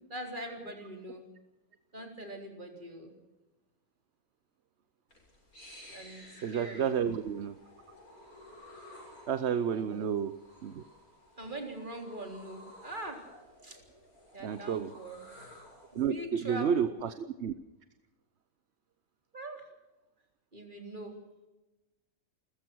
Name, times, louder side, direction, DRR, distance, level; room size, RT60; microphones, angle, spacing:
voice 1, 0.1-1.2 1.9-3.1 5.9-6.9 9.7-10.2 11.3-13.2 13.6-13.8 14.3-15.2 15.9-17.0 19.3-19.7 20.5-21.2, right 1 dB, 35° right, 3 dB, 4.0 m, -42 dB
sound 1, 5.1-16.1, left 1 dB, 85° left, 7.6 m, -54 dB
voice 2, 6.4-7.5 9.3-10.3 10.6-10.8 14.4-14.9 15.9-17.5, right 7 dB, 55° right, 12 dB, 1.0 m, -31 dB
29.5 x 14.5 x 6.3 m, 1.1 s
omnidirectional pair, 1.5 m